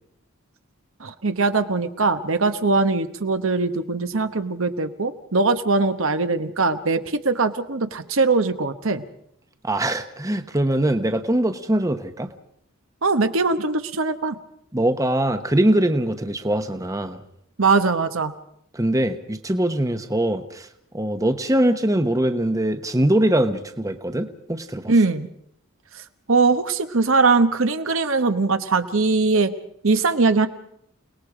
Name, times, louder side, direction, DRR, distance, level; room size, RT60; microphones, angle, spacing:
voice 1, 1.0-9.0 13.0-14.4 17.6-18.3 24.9-25.3 26.3-29.5 29.8-30.5, right 3 dB, 65° right, 9 dB, 1.1 m, -21 dB
voice 2, 9.6-12.3 14.7-17.2 18.7-20.7 20.9-24.9, right 1 dB, 15° right, 8 dB, 1.0 m, -22 dB
29.5 x 19.0 x 5.0 m, 0.71 s
head